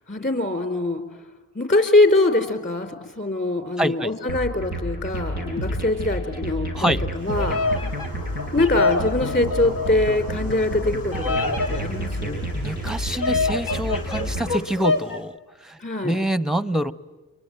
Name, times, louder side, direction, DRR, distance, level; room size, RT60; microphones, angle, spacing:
voice 1, 0.1-1.0 1.5-7.6 8.5-12.5 15.8-16.2, left 2 dB, 30° left, 7 dB, 4.3 m, -23 dB
voice 2, 3.8-4.1 6.7-7.0 12.5-15.3 15.6-15.8 16.0-16.9, right 1 dB, ahead, 15 dB, 1.0 m, -25 dB
sound 1, 4.3-14.6, equal, 85° left, 5.8 m, -30 dB
Bird vocalization bird call bird song, 7.2-15.2, left 3 dB, 55° left, 1.8 m, -27 dB
28.5 x 23.0 x 9.1 m, 1.2 s
supercardioid pair, 50°, 39 cm